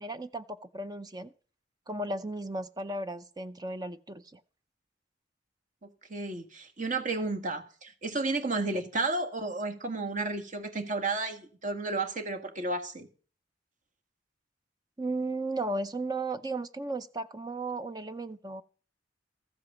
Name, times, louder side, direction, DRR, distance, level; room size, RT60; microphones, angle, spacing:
voice 1, 0.0-1.3 1.9-4.4 8.7-8.8 15.0-18.6, right 2 dB, 20° right, 0.6 m, -35 dB
voice 2, 5.8-13.1, right 3 dB, 45° right, 1.7 m, -32 dB
14.5 x 8.0 x 7.2 m
head